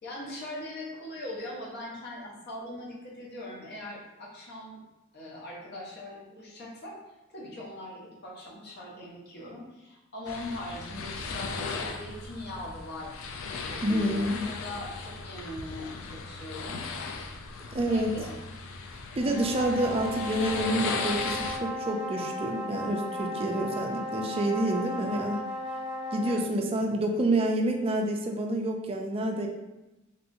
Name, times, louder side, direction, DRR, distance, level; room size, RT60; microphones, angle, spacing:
voice 1, 0.0-4.8 5.1-7.0 7.3-16.9 17.8-18.3 24.9-25.1, left 1 dB, 55° left, -4 dB, 0.9 m, -41 dB
sound 1, 10.3-21.6, left 4 dB, 75° left, 0.3 m, -37 dB
voice 2, 13.8-14.4 17.7-18.1 19.2-25.4 26.1-29.5, right 1 dB, 30° right, 2 dB, 0.3 m, -28 dB
sound 2, 19.1-26.5, left 1 dB, 5° right, 1.0 m, -35 dB
3.1 x 2.8 x 2.6 m, 1.0 s
head